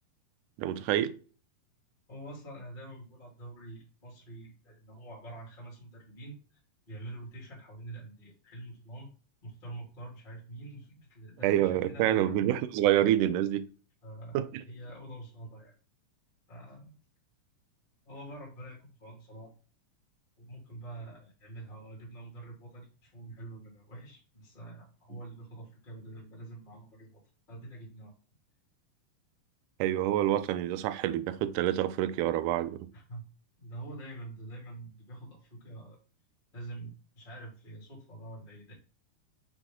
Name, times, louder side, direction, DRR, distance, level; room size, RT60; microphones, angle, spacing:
voice 1, 0.6-1.1 11.4-13.7 14.3-14.6 29.8-32.9, right 12 dB, 80° right, 1.9 m, -27 dB
voice 2, 2.1-6.6 6.9-9.1 9.4-12.6 14.0-15.7 16.5-17.0 18.0-19.5 20.4-27.2 27.5-28.1 32.9-33.3 33.6-36.0 36.5-38.7, right 2 dB, 15° left, 2.4 m, -46 dB
6.2 x 4.4 x 3.8 m
omnidirectional pair, 4.1 m